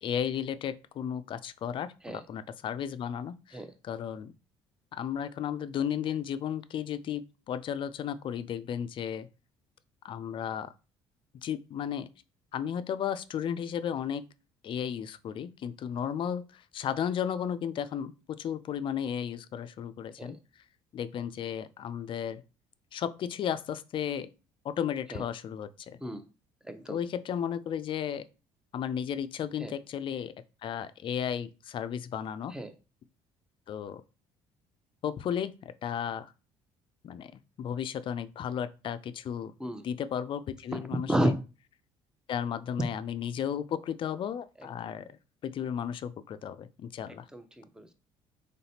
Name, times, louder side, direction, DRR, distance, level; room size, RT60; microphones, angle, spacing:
voice 1, 0.0-4.3 4.9-9.3 10.0-10.7 11.4-12.1 12.5-14.2 14.6-18.1 18.4-20.4 20.9-22.4 22.9-24.3 24.6-26.0 26.9-28.2 28.7-30.3 30.6-32.6 33.7-34.0 35.0-36.3 37.0-37.3 37.6-39.5 39.8-41.3 42.3-45.2 45.4-47.3, left 8 dB, 50° left, 0.4 m, -34 dB
voice 2, 26.6-27.0 29.6-29.7 32.5-32.7 39.6-39.8 40.7-40.8 41.1-41.3 44.6-44.7 47.1-47.9, equal, 5° right, 0.7 m, -32 dB
4.1 x 3.2 x 2.8 m
supercardioid pair, 75°, 11 cm